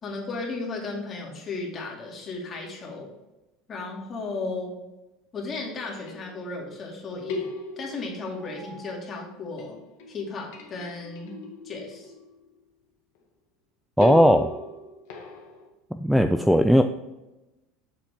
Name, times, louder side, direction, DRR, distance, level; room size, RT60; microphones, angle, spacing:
voice 1, 0.0-3.1 3.7-4.7 5.3-7.5 7.8-9.8 10.1-11.4 11.6-12.1, left 3 dB, 30° left, -1 dB, 2.4 m, -35 dB
sound 1, 5.9-6.8 7.3-9.3 9.6-12.6 14.0-15.7, left 3 dB, 70° left, 1.7 m, -38 dB
voice 2, 14.0-14.5 16.0-16.8, equal, ahead, 8 dB, 0.3 m, -17 dB
7.4 x 7.1 x 3.5 m, 1.0 s
supercardioid pair, 135°, 0 cm